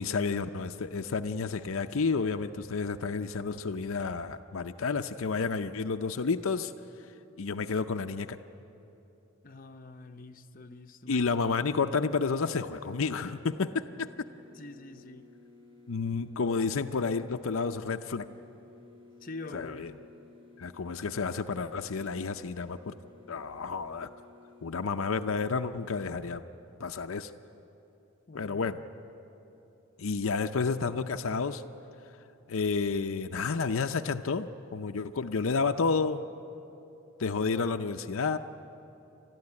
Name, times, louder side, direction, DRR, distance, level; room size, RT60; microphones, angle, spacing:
voice 1, 0.0-6.7 7.4-8.4 11.1-14.1 15.9-18.3 19.5-19.9 20.6-22.9 23.3-24.1 24.6-26.4 26.8-27.3 28.3-28.8 30.0-31.6 32.5-36.2 37.2-38.4, left 4 dB, 70° left, 7 dB, 0.6 m, -30 dB
voice 2, 9.4-11.3 14.5-15.3 19.2-20.1 28.3-28.8, left 2 dB, 40° left, 6 dB, 0.8 m, -45 dB
sound 1, 13.3-26.2, left 3 dB, 25° right, 4.1 m, -56 dB
29.5 x 12.5 x 9.7 m, 3.0 s
head